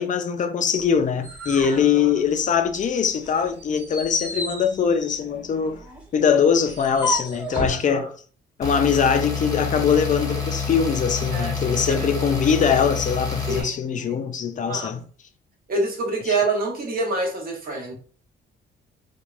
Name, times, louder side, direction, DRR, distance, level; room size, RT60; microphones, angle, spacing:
voice 1, 0.0-5.8 6.1-8.1 8.6-15.0 16.3-16.4, left 7 dB, 40° left, 0.4 m, -22 dB
sound 1, 0.8-2.8 3.2-7.8, equal, 5° right, 1.1 m, -33 dB
voice 2, 1.7-2.1 7.7-8.1 11.3-11.5 11.9-12.1 13.5-13.7 14.7-14.9 15.7-17.9, right 3 dB, 45° right, 1.1 m, -26 dB
sound 2, 8.6-13.6, left 5 dB, 15° left, 0.8 m, -28 dB
3.2 x 2.2 x 2.4 m
cardioid pair, 90°, 20 cm